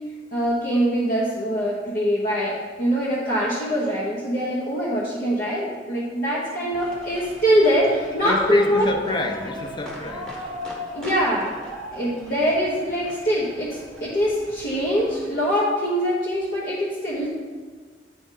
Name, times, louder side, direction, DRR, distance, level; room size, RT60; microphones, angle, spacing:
voice 1, 0.3-8.9 10.9-11.5 11.9-17.3, equal, 50° left, -6 dB, 0.9 m, -23 dB
sound 1, 6.7-15.3, left 1 dB, 5° left, 1.2 m, -39 dB
voice 2, 8.2-10.3, left 2 dB, 25° left, 5 dB, 0.5 m, -28 dB
9.3 x 3.8 x 3.7 m, 1.5 s
head